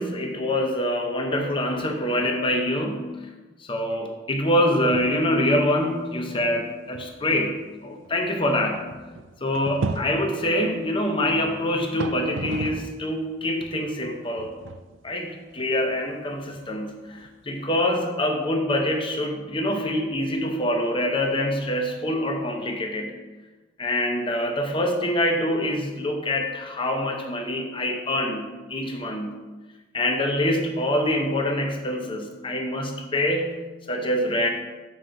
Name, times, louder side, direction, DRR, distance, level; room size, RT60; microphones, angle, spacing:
voice 1, 0.0-3.1 3.6-8.8 9.4-14.5 15.0-23.1 23.8-29.4 29.9-33.6 33.9-34.5, left 1 dB, 25° left, 3 dB, 0.7 m, -25 dB
sound 1, 4.8-5.3 5.6-5.7 6.4-6.5 6.9-13.0 13.4-17.7, right 3 dB, 70° right, 0.4 m, -36 dB
6.2 x 3.9 x 4.4 m, 1.2 s
head